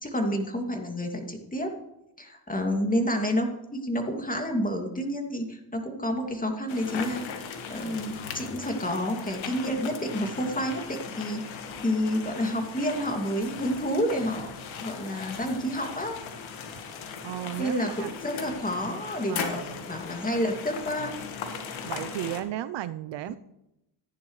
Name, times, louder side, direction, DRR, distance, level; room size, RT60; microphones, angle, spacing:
voice 1, 0.0-1.7 2.2-7.2 7.7-16.2 17.6-21.1 23.3-23.4, equal, 15° left, 3 dB, 2.4 m, -29 dB
sound 1, 6.7-22.4, left 6 dB, 70° left, 1.8 m, -38 dB
voice 2, 17.2-18.1 19.3-19.9 21.9-23.4, right 13 dB, 60° right, 15 dB, 0.6 m, -35 dB
14.5 x 10.0 x 3.2 m, 0.87 s
supercardioid pair, 65°, 49 cm